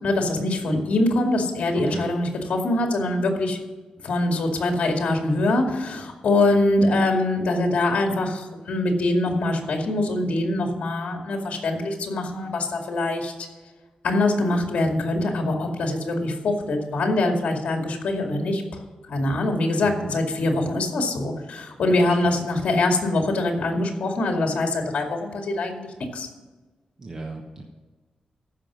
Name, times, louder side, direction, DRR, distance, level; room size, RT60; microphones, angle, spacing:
voice 1, 0.0-3.6 4.0-13.3 14.0-18.6 19.1-26.3, left 2 dB, 70° left, 2 dB, 2.3 m, -23 dB
voice 2, 19.8-20.2 22.1-22.3 27.0-27.6, right 2 dB, 30° right, -1 dB, 1.2 m, -35 dB
15.0 x 5.9 x 6.2 m, 1.3 s
wide cardioid pair, 160°, 2 cm